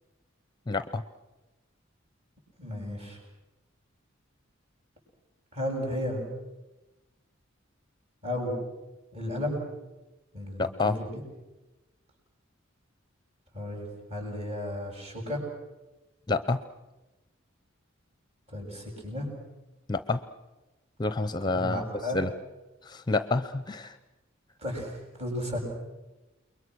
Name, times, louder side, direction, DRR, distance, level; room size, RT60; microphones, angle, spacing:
voice 1, 0.7-1.0 10.6-11.0 16.3-16.6 19.9-20.2 21.0-21.8 22.1-22.3 22.9-24.0, left 3 dB, 20° left, 12 dB, 0.8 m, -28 dB
voice 2, 2.6-3.2 5.5-6.2 8.2-8.5 9.1-9.6 10.3-11.2 13.5-15.4 18.5-19.3 21.4-22.2 24.6-25.6, left 1 dB, 30° right, 0 dB, 7.3 m, -34 dB
29.0 x 22.5 x 6.4 m, 1.1 s
head